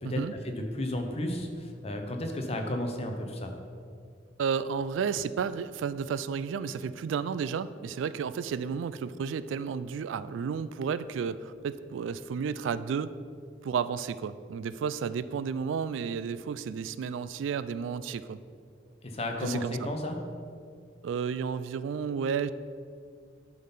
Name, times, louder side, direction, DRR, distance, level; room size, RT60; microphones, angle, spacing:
voice 1, 0.0-3.5 19.0-20.2, left 1 dB, 35° left, 4 dB, 0.8 m, -33 dB
voice 2, 4.4-13.1 13.6-18.4 19.4-19.9 21.0-22.5, right 6 dB, 80° right, 15 dB, 0.3 m, -32 dB
10.5 x 3.9 x 5.6 m, 2.2 s
head